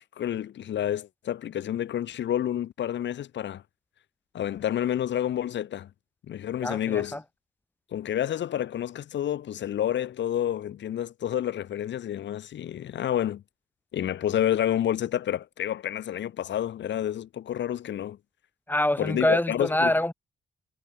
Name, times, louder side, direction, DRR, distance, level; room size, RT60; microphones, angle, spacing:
voice 1, 0.0-3.6 4.3-5.9 6.3-7.2 7.9-13.4 13.9-18.2 19.0-19.9, left 11 dB, 90° left, 6.3 m, -29 dB
voice 2, 6.6-7.2 18.7-20.1, left 1 dB, 10° left, 6.2 m, -25 dB
cardioid pair, 70°, 18 cm